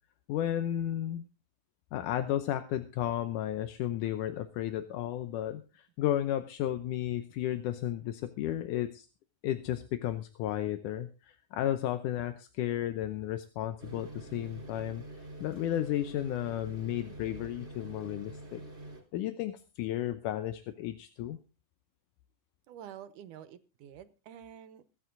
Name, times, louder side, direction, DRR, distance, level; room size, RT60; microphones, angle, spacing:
voice 1, 0.3-1.2 1.9-9.1 9.4-15.1 15.4-18.6 19.1-21.4, left 12 dB, 80° left, 10 dB, 2.3 m, -33 dB
sound 1, 13.8-19.0, right 2 dB, 20° right, 3.9 m, -46 dB
voice 2, 22.7-24.8, right 10 dB, 75° right, 13 dB, 2.5 m, -48 dB
22.5 x 9.3 x 3.9 m, 0.33 s
omnidirectional pair, 3.7 m